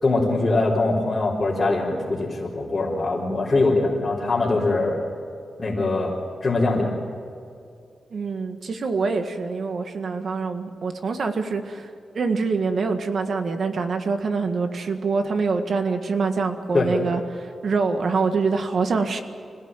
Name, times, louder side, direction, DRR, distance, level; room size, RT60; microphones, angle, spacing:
voice 1, 0.0-5.0 5.6-6.1 6.4-6.9 16.7-16.9, left 2 dB, 25° left, -7 dB, 4.0 m, -22 dB
voice 2, 8.1-19.2, right 4 dB, 55° right, 7 dB, 1.8 m, -25 dB
26.5 x 17.5 x 9.1 m, 2.4 s
wide cardioid pair, 155°, 0 cm